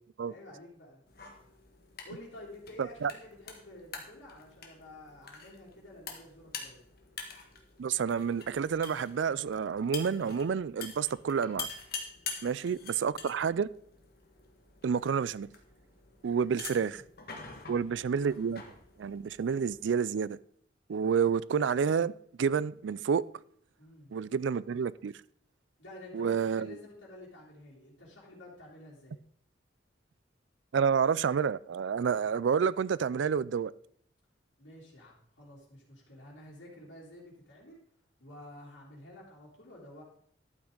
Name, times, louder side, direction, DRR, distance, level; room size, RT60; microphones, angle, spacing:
voice 1, 0.2-1.0 2.0-6.8 12.4-12.6 16.6-17.0 17.5-18.1 23.8-24.1 25.8-29.1 34.6-37.8 38.2-40.0, left 1 dB, 90° left, 3.3 m, -50 dB
sound 1, 1.1-19.9, left 5 dB, 55° left, 1.6 m, -46 dB
voice 2, 2.8-3.1 7.8-11.7 12.4-13.7 14.8-15.5 16.2-17.0 17.7-18.6 19.0-20.4 20.9-22.1 22.4-23.2 24.1-25.1 26.1-26.8 30.7-33.7, right 6 dB, 75° right, 0.4 m, -29 dB
12.0 x 8.8 x 3.8 m
head